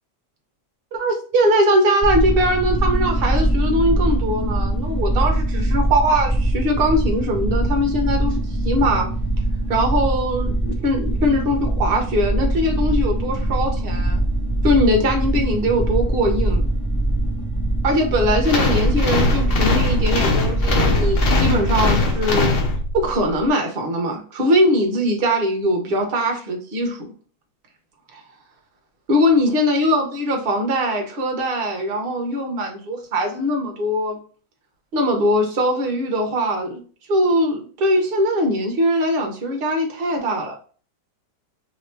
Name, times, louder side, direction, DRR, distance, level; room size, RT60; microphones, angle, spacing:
voice 1, 0.9-9.1 9.7-14.2 14.6-16.7 17.8-22.5 22.9-27.1 28.1-28.2 29.1-34.2 34.9-36.8 37.1-40.6, equal, 45° right, 3 dB, 0.8 m, -21 dB
sound 1, 2.0-21.9, right 1 dB, 15° left, 1.1 m, -22 dB
sound 2, 18.4-23.2, left 3 dB, 60° left, 0.6 m, -21 dB
2.9 x 2.8 x 3.2 m, 0.41 s
omnidirectional pair, 1.8 m